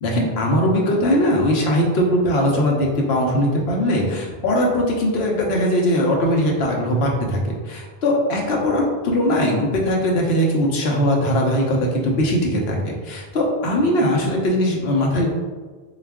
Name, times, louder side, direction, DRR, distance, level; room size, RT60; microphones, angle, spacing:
voice 1, 0.0-15.3, equal, 75° left, -1 dB, 1.0 m, -20 dB
3.9 x 2.4 x 3.5 m, 1.4 s
omnidirectional pair, 1.1 m